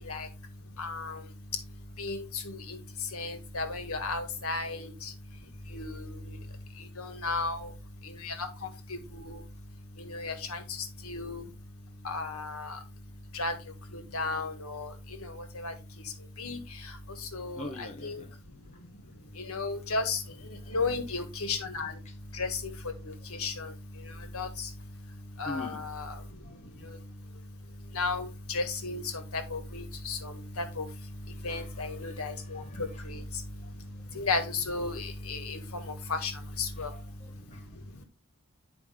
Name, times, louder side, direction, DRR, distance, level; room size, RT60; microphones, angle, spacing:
voice 1, 0.8-1.2 2.0-2.8 3.1-5.1 5.7-6.0 7.0-7.7 8.2-8.5 9.1-9.4 10.1-10.6 11.0-11.5 12.0-12.8 13.3-13.5 13.9-14.9 15.2-15.7 16.4-16.6 17.3-18.2 19.4-20.2 20.7-21.9 22.3-22.6 23.4-23.7 24.3-24.7 25.4-26.2 27.9-30.9 31.4-33.2 34.1-36.3 36.6-36.9, left 3 dB, 80° left, 1.7 m, -34 dB
voice 2, 17.2-18.4 18.7-18.8 22.0-22.1 25.4-25.8 26.4-26.8 27.2-27.8 31.5-33.0 33.6-33.8 36.8-38.0, left 2 dB, 30° left, 0.9 m, -45 dB
9.6 x 4.9 x 3.5 m
head